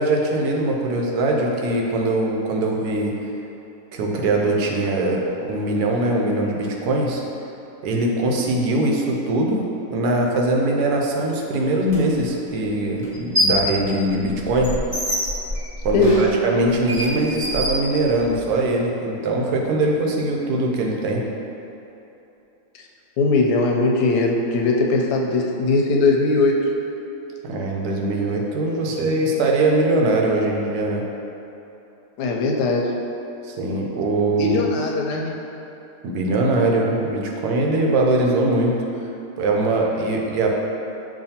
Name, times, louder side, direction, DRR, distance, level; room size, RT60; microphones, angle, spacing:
voice 1, 0.0-3.1 3.9-7.2 7.8-9.6 9.9-14.7 15.8-21.2 27.4-31.0 33.4-34.6 36.0-38.8 39.4-40.5, right 2 dB, 75° right, 0 dB, 1.1 m, -21 dB
sound 1, 11.9-12.0 13.0-13.7 14.1-18.4, equal, 30° right, 1.1 m, -25 dB
voice 2, 23.2-26.6 32.2-32.9 34.4-35.3, left 3 dB, 90° left, 0 dB, 1.2 m, -19 dB
7.1 x 2.6 x 2.8 m, 2.9 s
omnidirectional pair, 1.7 m